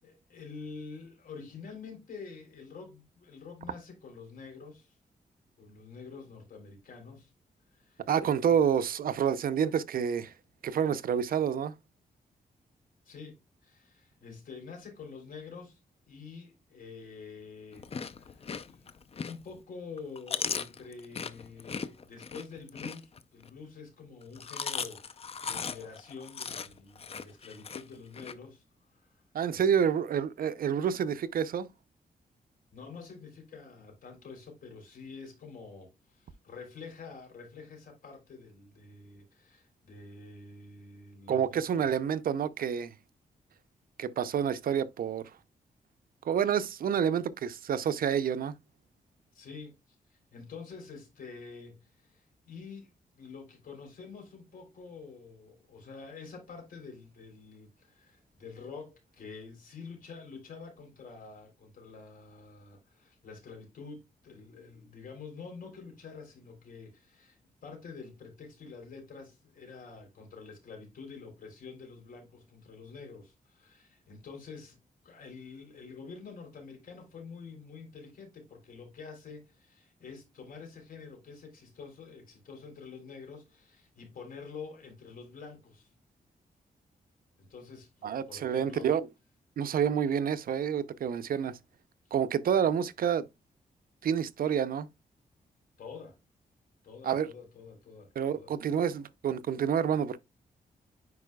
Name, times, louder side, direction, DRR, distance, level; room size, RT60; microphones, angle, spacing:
voice 1, 0.0-4.9 5.6-7.3 7.7-8.1 8.4-8.5 13.0-13.4 13.6-15.8 16.1-28.6 28.9-29.2 29.5-29.7 32.7-41.9 49.3-49.8 50.1-74.8 75.0-85.9 87.4-88.9 92.0-92.2 95.8-96.2 96.8-98.7, left 5 dB, 65° left, 3.3 m, -47 dB
voice 2, 8.1-10.3 10.6-11.7 29.3-31.7 41.3-42.9 44.0-45.2 46.2-48.5 88.0-89.1 89.6-91.6 92.1-93.2 94.0-94.9 97.0-97.3 98.2-100.2, right 8 dB, 70° right, 0.6 m, -28 dB
Chewing mastication, 17.7-19.6 20.0-23.5 24.2-28.3, left 6 dB, 40° left, 0.5 m, -38 dB
9.6 x 4.6 x 2.3 m
wide cardioid pair, 125°, 16 cm